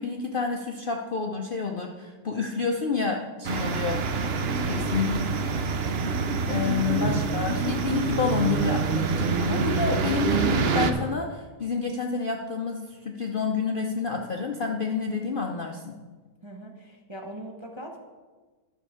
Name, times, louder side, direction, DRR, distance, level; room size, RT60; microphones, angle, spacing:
voice 1, 0.0-4.0 4.7-5.2 5.6-6.1 6.5-15.9, left 5 dB, 90° left, 1 dB, 0.4 m, -29 dB
voice 2, 3.4-3.9 4.6-4.9 16.4-18.0, right 1 dB, 30° right, 0 dB, 0.5 m, -41 dB
sound 1, 3.4-10.9, right 5 dB, 80° right, 0.5 m, -26 dB
12.0 x 6.5 x 4.8 m, 1.3 s
omnidirectional pair, 1.9 m